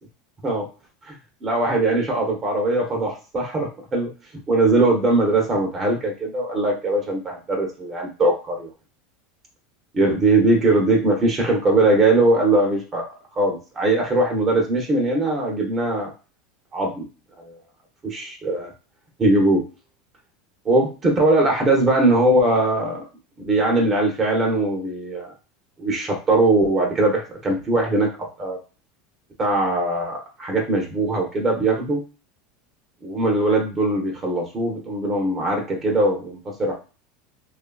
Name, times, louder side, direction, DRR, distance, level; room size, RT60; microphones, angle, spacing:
voice 1, 1.4-4.1 4.5-8.7 9.9-13.0 13.4-16.1 16.7-17.1 17.4-17.5 18.0-18.7 19.2-19.6 20.6-23.0 23.4-25.3 25.8-28.6 29.4-32.0 33.0-36.7, right 2 dB, 25° right, 1 dB, 0.7 m, -20 dB
2.7 x 2.3 x 2.2 m, 0.33 s
supercardioid pair, 125°, 0 cm